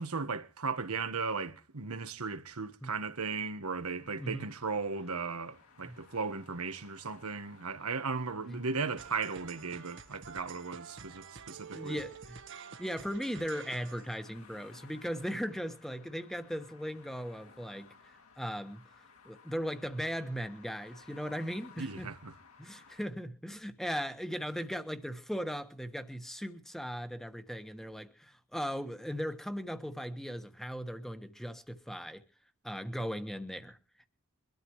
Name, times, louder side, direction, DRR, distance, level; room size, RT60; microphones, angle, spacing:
voice 1, 0.0-12.0 21.8-22.3, right 4 dB, 90° right, 1.3 m, -36 dB
sound 1, 3.6-23.1, left 5 dB, 80° left, 3.8 m, -60 dB
voice 2, 4.2-4.5 5.8-6.0 8.5-8.6 11.7-12.4 12.8-17.9 18.4-18.8 19.2-22.1 22.6-32.2 32.6-33.8, equal, ahead, 1.3 m, -38 dB
sound 2, 9.0-14.2, right 6 dB, 60° right, 1.3 m, -48 dB
23.5 x 13.0 x 3.1 m
head